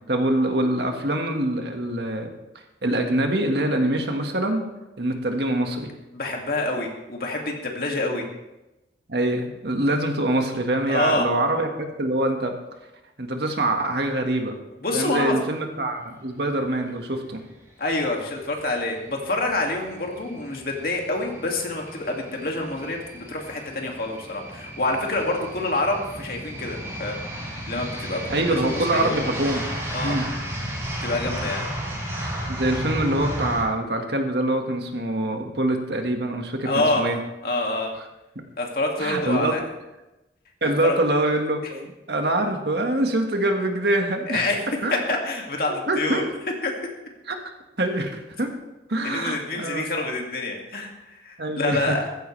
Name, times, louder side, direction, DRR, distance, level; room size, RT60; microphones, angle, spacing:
voice 1, 0.1-2.3 2.8-4.7 5.0-5.9 8.0-8.2 9.1-12.5 13.2-14.6 14.9-17.4 28.3-29.6 30.0-30.2 32.5-37.2 39.0-39.6 40.6-44.5 44.8-45.2 45.9-46.3 47.3-47.4 47.8-48.5 48.9-49.9 51.4-52.0, right 1 dB, 65° right, 4 dB, 1.8 m, -24 dB
voice 2, 6.1-8.2 10.9-11.3 14.8-15.3 17.8-27.2 27.7-29.2 29.9-30.2 31.0-31.7 36.6-37.0 37.4-37.9 38.6-39.6 40.6-41.0 44.3-44.6 44.9-46.2 46.6-46.7 49.0-52.0, left 2 dB, 55° left, 1 dB, 2.4 m, -27 dB
sound 1, 17.8-33.6, equal, 15° right, 4.5 m, -34 dB
15.5 x 14.5 x 3.4 m, 0.99 s
head